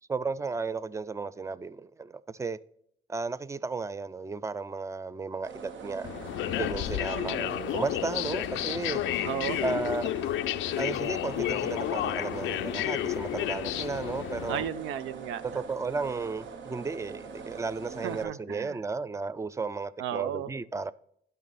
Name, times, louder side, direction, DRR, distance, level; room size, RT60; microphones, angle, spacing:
voice 1, 0.1-2.6 3.1-6.1 6.5-9.0 9.6-10.1 10.8-14.6 15.4-20.9, right 4 dB, 15° right, 0.4 m, -34 dB
sound 1, 5.4-18.2, right 5 dB, 70° right, 1.0 m, -43 dB
sound 2, 6.0-14.7, left 14 dB, 80° left, 0.4 m, -31 dB
voice 2, 7.1-7.6 9.2-9.6 14.5-15.4 18.0-18.8 20.0-20.5, right 10 dB, 90° right, 0.6 m, -34 dB
11.0 x 5.6 x 4.0 m
cardioid pair, 90°, 20 cm